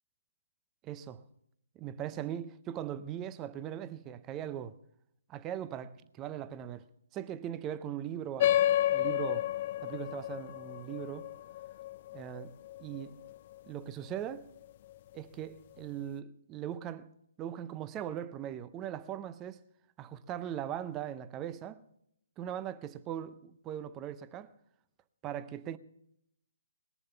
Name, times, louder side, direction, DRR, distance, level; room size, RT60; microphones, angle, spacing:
voice 1, 0.8-1.2 1.8-4.8 5.3-6.8 7.1-9.5 9.8-11.3 12.1-12.5 12.8-13.2 13.7-14.5 15.1-17.1 17.4-19.6 20.0-21.8 22.4-24.5 25.2-25.8, right 10 dB, 20° right, 0.5 m, -40 dB
sound 1, 8.4-13.3, left 12 dB, 40° left, 0.5 m, -31 dB
20.0 x 7.0 x 6.8 m
hypercardioid pair, 145°, 0 cm